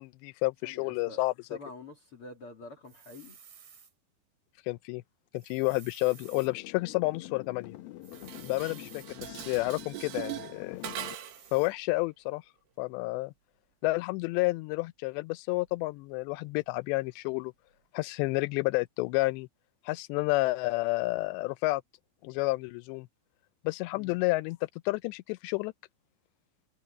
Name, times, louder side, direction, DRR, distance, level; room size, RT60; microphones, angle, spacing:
voice 1, 0.0-1.3 4.7-5.0 5.3-7.7 8.4-10.8 11.5-12.4 12.8-13.3 13.8-17.5 17.9-19.5 19.9-21.8 22.2-23.1 23.6-24.6 24.9-25.7, left 23 dB, 85° left, 2.6 m, -30 dB
voice 2, 0.6-1.2 1.5-3.4 8.7-8.9 23.9-24.1, left 2 dB, 40° left, 2.6 m, -47 dB
sound 1, 2.9-3.9 5.3-6.5 8.0-9.1 10.8-11.7, right 7 dB, 45° right, 3.3 m, -54 dB
sound 2, 6.1-11.2, left 15 dB, 70° left, 2.5 m, -46 dB
Dishes pots and pans, 8.1-11.5, right 12 dB, 75° right, 4.0 m, -41 dB
omnidirectional pair, 5.3 m